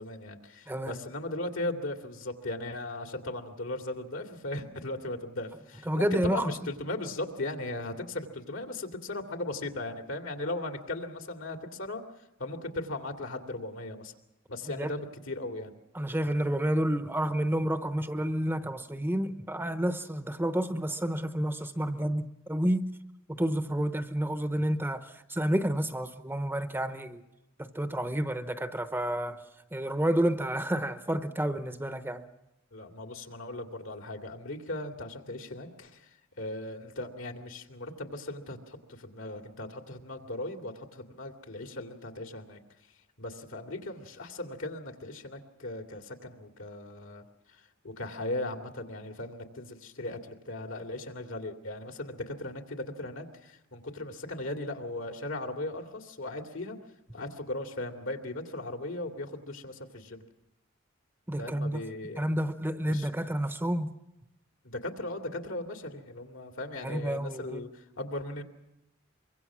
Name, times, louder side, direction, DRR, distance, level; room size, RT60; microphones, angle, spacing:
voice 1, 0.0-12.0 12.4-14.1 14.5-15.7 32.7-36.1 36.4-42.6 43.2-47.2 47.8-56.8 57.1-60.2 61.4-62.2 62.8-63.1 64.6-68.4, left 2 dB, 70° left, 2.5 m, -37 dB
voice 2, 0.7-1.0 5.9-6.5 14.8-14.9 15.9-22.9 23.3-27.2 27.6-29.4 29.7-32.3 61.3-61.8 62.2-63.9 66.8-67.6, right 1 dB, 10° right, 0.9 m, -30 dB
24.5 x 23.5 x 6.2 m
head